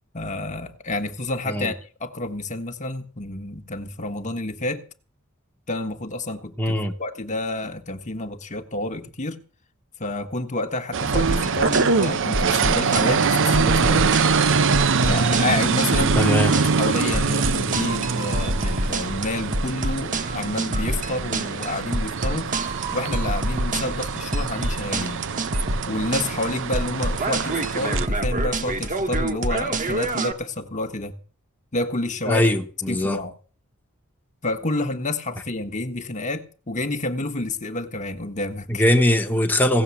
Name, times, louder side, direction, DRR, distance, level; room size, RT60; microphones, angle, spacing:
voice 1, 0.1-4.8 5.7-9.4 10.0-14.1 15.1-16.4 16.7-22.5 22.9-25.2 25.9-31.2 31.7-32.4 32.9-33.3 34.4-38.8, left 2 dB, 35° left, 1.4 m, -29 dB
voice 2, 6.6-6.9 16.2-16.5 32.3-33.2 38.7-39.8, left 1 dB, 10° left, 1.2 m, -20 dB
sound 1, 10.9-28.1, right 5 dB, 60° right, 0.7 m, -24 dB
sound 2, 11.1-30.3, right 2 dB, 40° right, 1.5 m, -27 dB
17.0 x 7.1 x 8.4 m
head